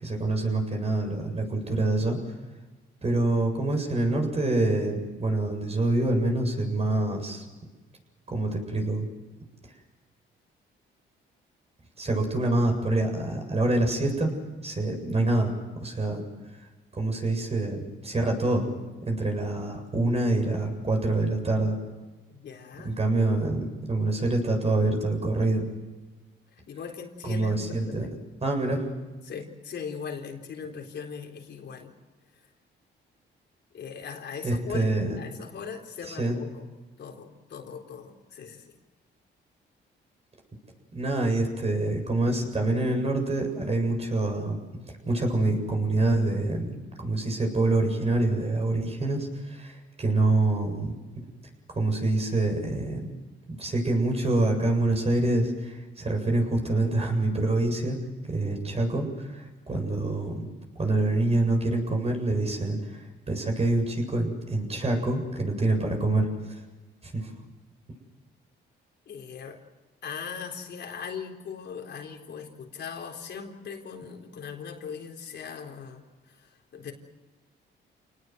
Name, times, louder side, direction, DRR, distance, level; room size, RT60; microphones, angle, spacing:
voice 1, 0.0-2.2 3.0-7.4 8.3-9.1 12.0-14.3 14.6-15.5 15.8-16.2 16.9-18.6 19.0-21.8 22.8-25.6 27.2-28.1 28.4-28.9 34.4-35.2 36.1-36.4 40.9-44.6 45.1-46.7 47.0-50.9 51.7-53.1 53.5-58.0 58.2-60.5 60.8-66.6 67.0-67.3, right 2 dB, 30° right, 3 dB, 7.6 m, -26 dB
voice 2, 22.3-23.0 26.5-28.1 29.2-31.9 33.7-34.9 35.2-36.7 37.0-38.7 69.1-69.6 70.0-76.9, left 6 dB, 60° left, 2 dB, 4.1 m, -39 dB
28.5 x 19.0 x 8.0 m, 1.2 s
cardioid pair, 90°, 20 cm